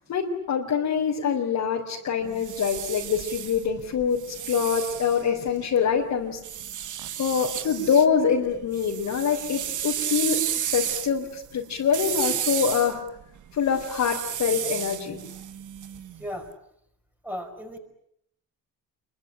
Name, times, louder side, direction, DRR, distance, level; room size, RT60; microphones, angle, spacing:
voice 1, 0.1-6.4 7.2-13.0 13.5-15.2, left 7 dB, 55° left, -2 dB, 4.0 m, -25 dB
sound 1, 2.2-5.8 6.4-8.1 8.4-16.3, right 10 dB, 55° right, 1.5 m, -32 dB
voice 2, 17.2-17.8, equal, 5° right, 4 dB, 5.3 m, -35 dB
28.0 x 23.0 x 8.9 m, 0.74 s
cardioid pair, 130°, 35 cm